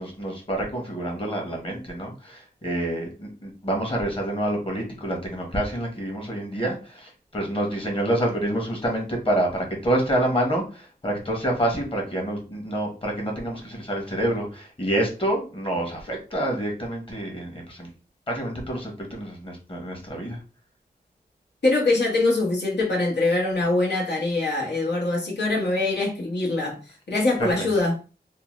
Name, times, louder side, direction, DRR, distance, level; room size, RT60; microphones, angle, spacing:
voice 1, 0.0-17.9 18.3-20.4 27.4-27.7, right 1 dB, 30° left, 1 dB, 1.0 m, -27 dB
voice 2, 21.6-26.8 27.1-27.9, left 2 dB, 90° left, -3 dB, 1.0 m, -23 dB
2.7 x 2.0 x 3.0 m, 0.35 s
wide cardioid pair, 70°, 17 cm